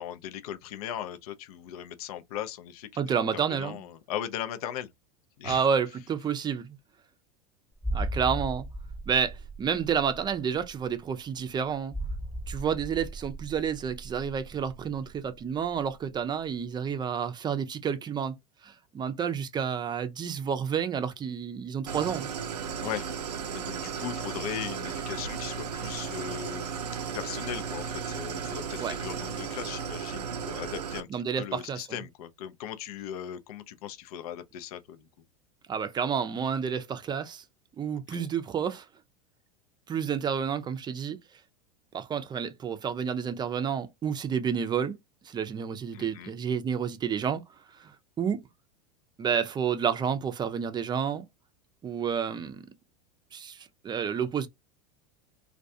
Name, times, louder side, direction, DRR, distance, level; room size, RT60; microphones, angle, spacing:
voice 1, 0.0-3.0 3.3-4.9 5.4-5.6 22.8-23.1 23.5-26.8 27.1-31.1 31.3-35.1 38.1-38.3 45.9-46.3, left 10 dB, 70° left, 0.5 m, -38 dB
voice 2, 3.0-3.8 5.4-6.8 7.9-8.6 9.1-11.9 12.5-18.4 18.6-22.3 28.8-28.9 31.1-31.9 35.7-37.4 37.8-38.9 39.9-41.2 41.9-45.0 45.2-47.4 47.8-48.4 49.2-51.3 51.8-52.7 53.3-54.5, right 7 dB, 20° right, 0.5 m, -30 dB
sound 1, 7.8-16.2 16.5-16.6, right 1 dB, 10° left, 1.0 m, -37 dB
Idling, 21.9-31.0, right 7 dB, 90° right, 0.5 m, -35 dB
2.3 x 2.2 x 2.6 m
hypercardioid pair, 95°, 20 cm